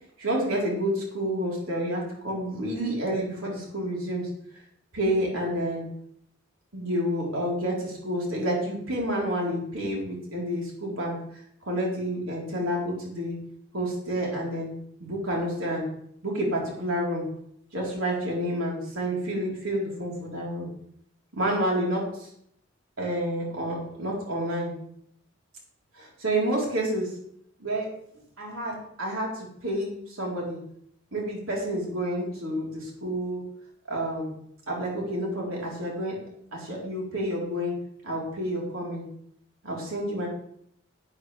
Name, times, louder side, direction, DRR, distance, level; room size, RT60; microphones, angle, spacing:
voice 1, 0.2-4.3 4.9-5.9 6.7-11.2 11.6-13.4 13.7-14.7 15.0-15.9 16.2-17.3 17.7-20.7 21.4-22.3 23.0-24.7 26.0-27.1 27.6-27.9 28.4-30.6 31.1-33.4 33.9-34.3 34.7-36.2 36.5-37.8 38.0-39.1 39.6-40.3, equal, 75° right, -3 dB, 4.0 m, -29 dB
12.5 x 9.0 x 3.4 m, 0.70 s
head